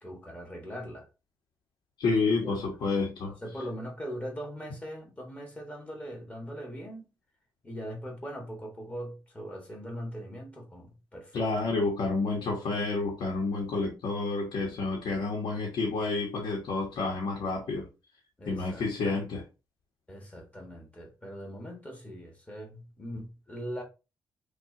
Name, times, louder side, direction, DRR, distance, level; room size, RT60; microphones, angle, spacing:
voice 1, 0.0-1.1 2.3-2.6 3.3-7.1 7.6-11.8 18.4-19.2 20.1-23.8, equal, 15° left, 1.3 m, -41 dB
voice 2, 2.0-3.4 11.3-17.9 18.5-19.4, left 3 dB, 80° left, 1.2 m, -29 dB
5.9 x 2.4 x 3.7 m
wide cardioid pair, 175°, 8 cm